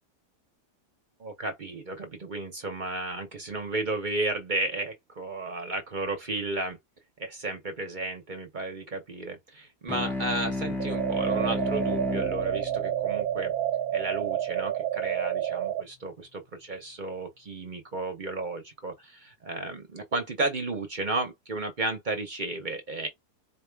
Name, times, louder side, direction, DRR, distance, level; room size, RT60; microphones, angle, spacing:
voice 1, 1.2-6.8 7.2-13.5 13.9-23.1, right 2 dB, 40° right, 0.7 m, -33 dB
sound 1, 9.9-14.7, left 2 dB, 5° left, 0.3 m, -34 dB
sound 2, 10.8-15.8, right 11 dB, 70° right, 1.0 m, -29 dB
4.4 x 2.4 x 3.4 m
omnidirectional pair, 1.7 m